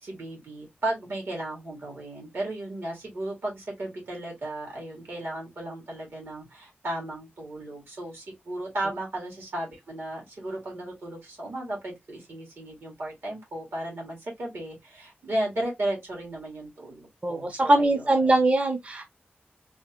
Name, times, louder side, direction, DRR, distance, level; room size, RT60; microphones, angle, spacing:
voice 1, 0.0-18.3, right 1 dB, 80° right, 2.1 m, -35 dB
voice 2, 17.2-19.0, right 2 dB, 35° right, 0.5 m, -22 dB
3.5 x 2.5 x 2.8 m
wide cardioid pair, 115°, 4 cm